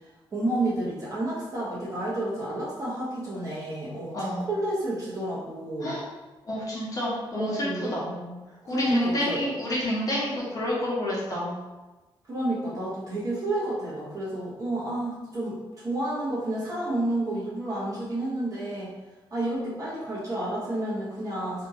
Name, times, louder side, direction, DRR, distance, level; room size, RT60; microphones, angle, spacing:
voice 1, 0.3-6.0 7.3-8.3 8.6-9.4 12.3-18.9 19.3-21.7, right 1 dB, 35° right, -8 dB, 1.2 m, -30 dB
voice 2, 4.1-4.5 5.8-6.0 6.4-8.0 8.7-11.6, left 1 dB, 40° left, -6 dB, 1.0 m, -29 dB
2.8 x 2.8 x 3.7 m, 1.1 s
wide cardioid pair, 175°, 9 cm